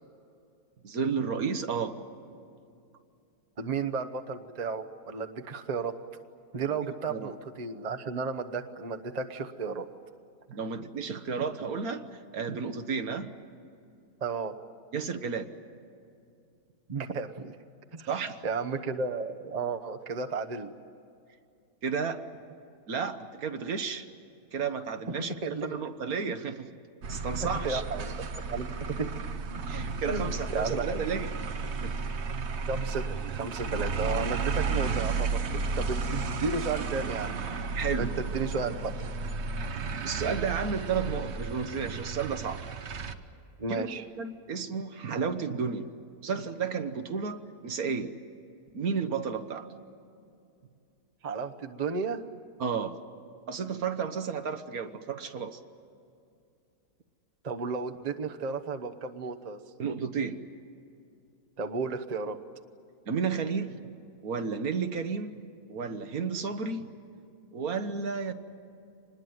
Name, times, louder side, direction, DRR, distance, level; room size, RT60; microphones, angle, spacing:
voice 1, 0.8-2.0 6.8-7.3 10.5-12.1 12.3-13.3 14.9-15.5 18.1-18.4 21.8-22.2 22.9-24.1 24.5-26.7 27.1-27.8 29.7-31.3 31.8-32.0 37.7-38.1 40.0-42.6 43.7-43.9 44.2-45.9 46.2-48.1 48.7-49.7 52.6-53.0 53.5-55.6 59.8-60.4 63.1-63.8 64.2-65.3 65.7-66.9 67.5-68.3, right 5 dB, 70° right, 8 dB, 1.7 m, -32 dB
voice 2, 3.6-6.0 6.5-9.9 14.2-14.6 16.9-17.6 17.9-18.1 18.4-20.7 25.4-25.8 27.6-28.1 28.5-29.1 29.5-29.6 30.1-31.0 32.7-37.3 38.0-38.9 43.6-44.0 51.2-52.2 57.4-59.6 61.6-62.4, right 4 dB, 30° right, 6 dB, 0.9 m, -33 dB
sound 1, 27.0-43.1, right 4 dB, 50° right, 1.2 m, -33 dB
26.0 x 20.5 x 9.4 m, 2.5 s
omnidirectional pair, 1.6 m